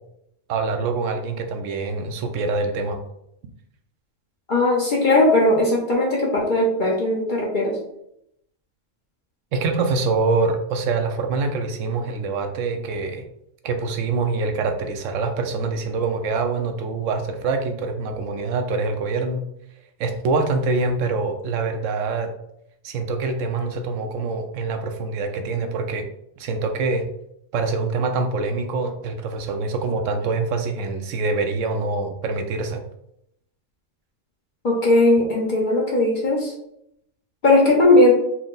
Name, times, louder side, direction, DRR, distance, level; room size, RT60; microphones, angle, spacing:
voice 1, 0.5-3.0 9.5-13.2 13.6-19.4 20.0-22.3 22.8-26.1 26.4-27.1 27.5-32.8, right 3 dB, 75° right, 5 dB, 0.9 m, -25 dB
voice 2, 4.5-7.8 34.6-36.5 37.4-38.1, left 2 dB, 45° left, -2 dB, 0.8 m, -18 dB
4.5 x 2.0 x 3.8 m, 0.77 s
omnidirectional pair, 1.4 m